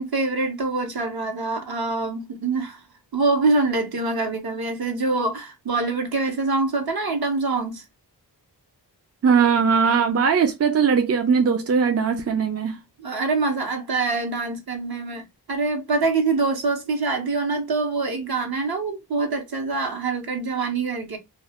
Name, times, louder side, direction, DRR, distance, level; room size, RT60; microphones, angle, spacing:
voice 1, 0.0-2.8 3.1-7.8 13.0-21.2, right 3 dB, 65° right, 1.0 m, -25 dB
voice 2, 9.2-12.8, right 6 dB, 40° right, 0.4 m, -20 dB
2.3 x 2.3 x 3.4 m
wide cardioid pair, 110°, 40 cm